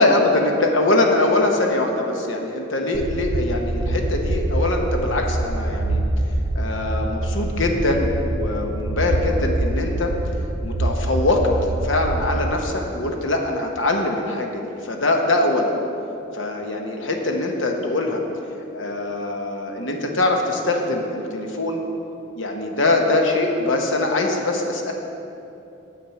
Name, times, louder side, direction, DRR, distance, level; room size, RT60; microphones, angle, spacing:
voice 1, 0.0-6.0 6.5-10.1 10.6-15.7 16.3-18.2 18.7-21.8 22.4-24.9, left 2 dB, 70° left, 2 dB, 1.0 m, -22 dB
sound 1, 2.9-12.7, right 1 dB, 40° right, 0.4 m, -25 dB
7.3 x 7.0 x 5.9 m, 2.8 s
head